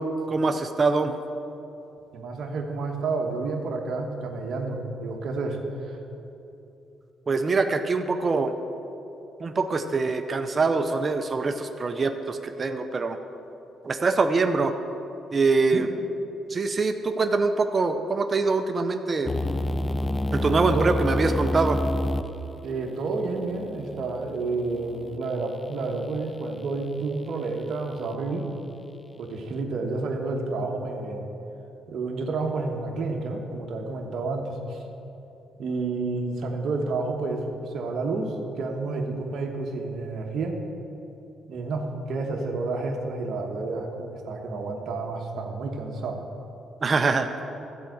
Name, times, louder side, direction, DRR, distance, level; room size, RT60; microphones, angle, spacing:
voice 1, 0.3-1.1 7.3-8.5 9.4-13.2 13.8-14.7 15.3-15.9 16.5-19.3 20.3-21.8 46.8-47.3, right 3 dB, 35° right, 7 dB, 0.6 m, -24 dB
voice 2, 2.1-6.0 15.7-15.8 20.7-20.9 22.6-28.5 29.2-31.2 31.9-34.8 35.6-40.6 41.5-46.2, right 3 dB, 65° right, 1 dB, 1.2 m, -30 dB
sound 1, 19.3-25.2, left 1 dB, 20° left, 0.4 m, -29 dB
13.0 x 4.7 x 7.7 m, 2.9 s
cardioid pair, 90°, 0 cm